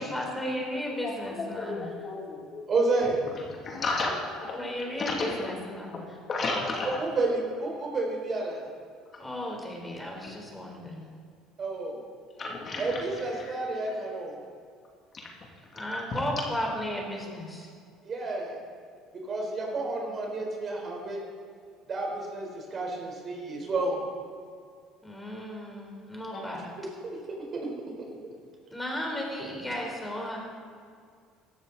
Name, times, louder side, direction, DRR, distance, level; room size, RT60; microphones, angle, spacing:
voice 1, 0.0-1.9 4.6-6.1 9.2-11.0 15.7-17.7 19.7-20.3 25.0-26.7 28.7-30.4, left 1 dB, 5° left, 0 dB, 3.9 m, -35 dB
voice 2, 0.9-3.1 3.4-4.6 4.9-5.5 5.9-6.0 6.3-6.9 12.4-13.1 13.4-13.5 15.2-15.3 15.7-15.8 16.1-16.2, left 3 dB, 40° left, -1 dB, 2.6 m, -33 dB
voice 3, 2.7-3.2 6.4-8.6 11.6-12.0 12.8-14.3 18.0-18.6 19.1-21.2 21.9-24.0 26.8-27.2 27.5-27.7, right 3 dB, 40° right, 0 dB, 4.1 m, -30 dB
16.5 x 13.0 x 4.1 m, 2.2 s
supercardioid pair, 105°, 0 cm